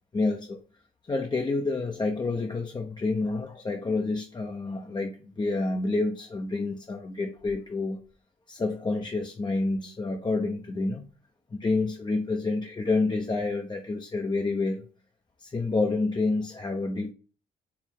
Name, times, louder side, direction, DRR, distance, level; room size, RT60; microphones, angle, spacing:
voice 1, 0.1-0.6 1.1-8.0 8.5-11.1 11.5-14.8 15.4-17.1, left 3 dB, 20° left, 0.6 m, -28 dB
4.6 x 3.1 x 3.6 m
cardioid pair, 90°, 20 cm